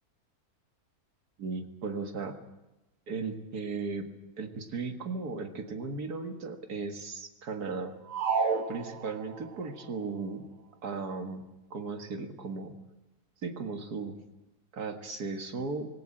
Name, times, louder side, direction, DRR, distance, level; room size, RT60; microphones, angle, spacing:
voice 1, 1.4-2.4 3.1-4.0 4.4-8.0 8.7-10.5 10.8-12.7 13.4-14.2 14.7-15.9, right 4 dB, 85° right, 6 dB, 2.3 m, -36 dB
sound 1, 8.1-9.6, right 5 dB, 60° right, 1.8 m, -30 dB
20.5 x 17.5 x 8.9 m, 0.98 s
omnidirectional pair, 1.6 m